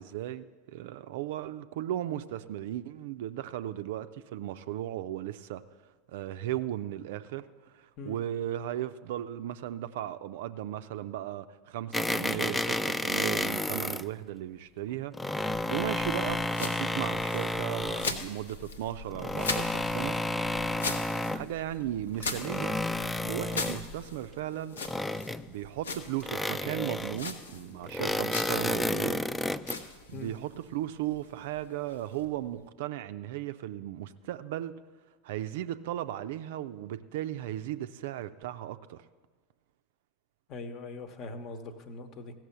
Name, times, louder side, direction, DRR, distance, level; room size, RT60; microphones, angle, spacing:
voice 1, 0.0-5.6 6.1-7.5 7.7-20.2 21.3-22.8 23.2-24.8 25.5-29.2 29.7-34.7 35.2-39.0, right 12 dB, 55° right, 12 dB, 0.4 m, -36 dB
sound 1, 11.9-14.1 14.9-18.2 19.1-21.5 22.1-23.9 24.8-25.7 26.2-27.3 27.8-29.8, left 1 dB, 10° left, 0.3 m, -31 dB
sound 2, 15.8-32.7, left 4 dB, 70° left, 0.8 m, -41 dB
voice 2, 40.5-42.3, left 3 dB, 40° left, 10 dB, 1.0 m, -41 dB
15.5 x 6.0 x 6.8 m, 1.4 s
figure-of-eight pair, 80°, 0 cm